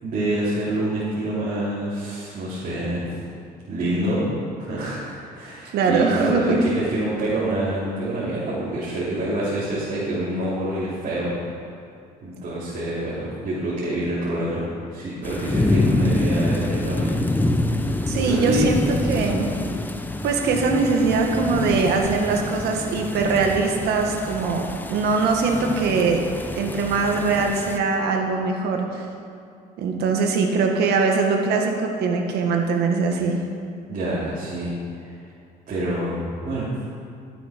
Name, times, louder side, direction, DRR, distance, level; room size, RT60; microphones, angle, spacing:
voice 1, 0.0-3.2 3.7-4.3 4.7-11.3 12.2-14.6 14.9-17.1 17.8-18.6 33.9-35.1 35.7-36.7, right 1 dB, 50° right, -9 dB, 3.6 m, -26 dB
voice 2, 5.7-6.4 18.1-18.8 19.1-19.5 20.2-26.2 26.6-29.0 29.8-33.4, right 4 dB, 75° right, 2 dB, 1.8 m, -22 dB
sound 1, 15.2-27.8, left 1 dB, 10° left, 0.8 m, -26 dB
14.5 x 8.5 x 5.3 m, 2.4 s
cardioid pair, 110°, 17 cm